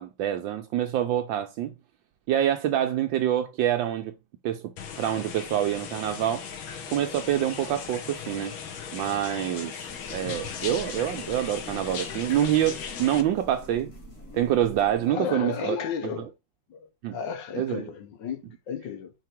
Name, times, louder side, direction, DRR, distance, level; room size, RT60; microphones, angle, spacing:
voice 1, 0.0-1.7 2.3-4.1 4.4-4.7 5.0-6.4 6.9-8.5 8.9-9.7 10.1-13.9 14.3-15.8 16.2-16.3 17.0-17.2 17.6-17.9, right 11 dB, 75° right, 1.4 m, -26 dB
sound 1, 4.8-13.2, left 7 dB, 85° left, 1.9 m, -38 dB
sound 2, 9.8-15.1, equal, 50° left, 2.7 m, -46 dB
voice 2, 15.1-16.3 16.7-19.1, left 7 dB, 70° left, 1.6 m, -34 dB
4.7 x 4.6 x 5.9 m
omnidirectional pair, 2.1 m